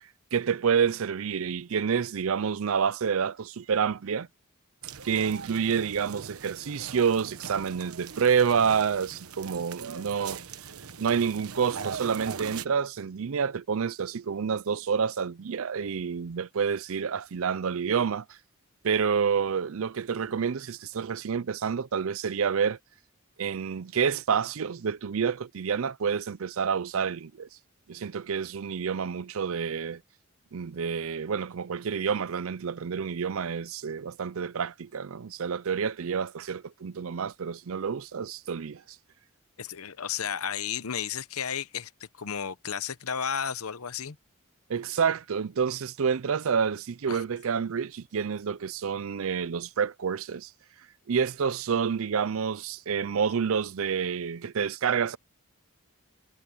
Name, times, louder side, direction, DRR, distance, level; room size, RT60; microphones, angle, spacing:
voice 1, 0.3-4.3 5.0-10.4 11.0-18.4 18.8-22.8 23.4-27.5 27.9-30.0 30.5-38.8 44.7-50.5 51.1-55.2, right 6 dB, 70° right, 0.5 m, -28 dB
sound 1, 4.8-12.7, right 6 dB, 85° right, 1.1 m, -41 dB
voice 2, 39.6-44.2 47.1-47.2, left 7 dB, 80° left, 0.9 m, -33 dB
head